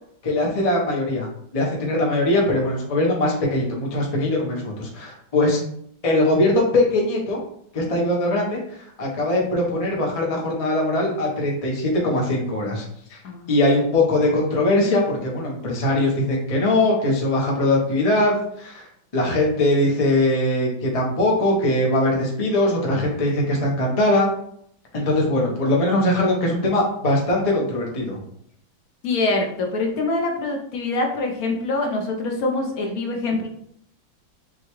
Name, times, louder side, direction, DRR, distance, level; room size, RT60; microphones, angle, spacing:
voice 1, 0.2-1.3 1.5-5.6 6.0-7.4 7.7-8.6 9.0-12.8 13.1-13.2 13.5-18.9 19.1-24.3 24.9-28.2, left 1 dB, 35° left, -2 dB, 0.5 m, -21 dB
voice 2, 29.0-33.5, left 2 dB, 65° left, 2 dB, 1.0 m, -24 dB
6.3 x 2.3 x 3.0 m, 0.68 s
omnidirectional pair, 2.1 m